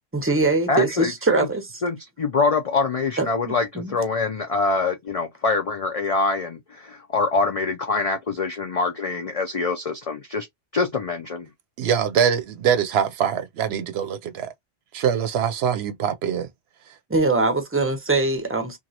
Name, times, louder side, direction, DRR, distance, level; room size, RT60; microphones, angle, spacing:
voice 1, 0.1-1.8 3.2-3.9 17.1-18.8, right 3 dB, 15° right, 0.5 m, -22 dB
voice 2, 0.7-1.5 1.8-10.5 10.7-11.5, left 3 dB, 60° left, 0.4 m, -25 dB
voice 3, 11.8-14.5 14.9-16.5, right 8 dB, 70° right, 0.8 m, -23 dB
3.1 x 2.5 x 2.7 m
omnidirectional pair, 1.2 m